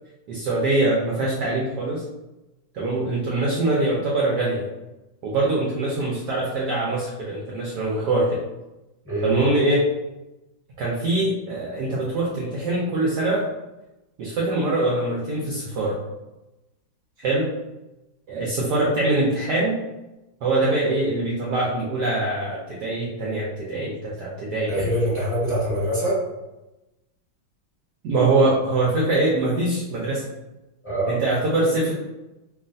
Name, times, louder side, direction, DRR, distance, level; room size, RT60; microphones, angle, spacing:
voice 1, 0.3-2.0 2.7-4.7 5.2-8.4 9.2-9.9 10.8-13.5 14.2-16.0 17.2-17.5 18.3-19.8 20.4-24.9 28.0-30.2 31.0-31.9, right 2 dB, 70° right, -4 dB, 1.0 m, -23 dB
voice 2, 24.7-26.1 30.8-31.2, equal, 10° left, -10 dB, 1.1 m, -24 dB
3.1 x 2.4 x 2.5 m, 1.0 s
omnidirectional pair, 2.2 m